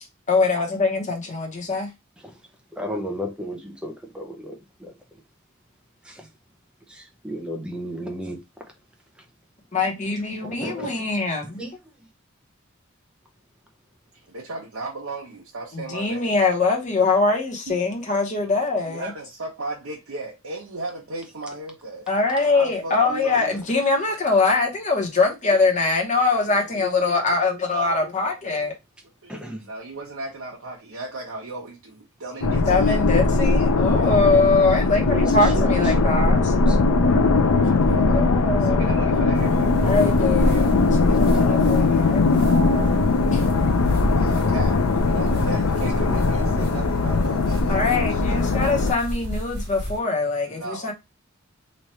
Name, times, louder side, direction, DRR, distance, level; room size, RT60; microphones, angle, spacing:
voice 1, 0.3-1.9 9.7-11.6 15.7-19.1 22.1-28.7 32.7-36.5 38.1-38.9 39.8-43.4 47.7-50.9, left 3 dB, 35° left, 1.0 m, -23 dB
voice 2, 2.7-4.9 6.0-6.3 6.9-8.4 10.4-10.9 11.6-11.7 29.3-29.7 35.1-36.8 37.2-37.3 44.2-44.4 45.2-45.3 45.7-46.1 46.4-47.1, equal, 5° right, 0.6 m, -34 dB
voice 3, 14.3-16.3 17.7-17.8 18.4-18.6 18.9-23.7 26.7-28.7 29.2-32.6 37.8-38.3 38.6-40.1 44.1-44.8 45.1-48.4 50.4-50.9, right 2 dB, 80° right, 0.9 m, -36 dB
sound 1, 32.4-48.9, left 3 dB, 75° left, 0.5 m, -20 dB
sound 2, 39.3-50.0, equal, 50° right, 1.3 m, -37 dB
3.2 x 2.5 x 4.2 m
head